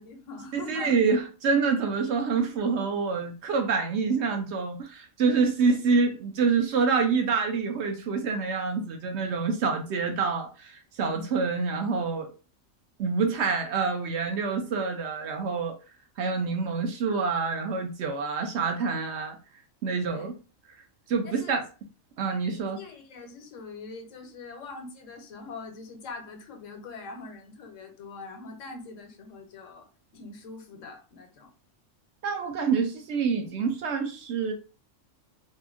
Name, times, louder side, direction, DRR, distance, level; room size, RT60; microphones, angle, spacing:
voice 1, 0.0-0.9 11.0-11.2 20.1-20.3 21.2-21.5 22.7-29.9 30.1-31.5, left 4 dB, 80° left, 1.1 m, -42 dB
voice 2, 0.5-12.3 13.0-15.7 16.2-19.4 19.8-20.3 21.1-21.6 22.2-22.8 32.2-34.5, right 5 dB, 70° right, 0.8 m, -27 dB
2.8 x 2.5 x 2.4 m
omnidirectional pair, 1.3 m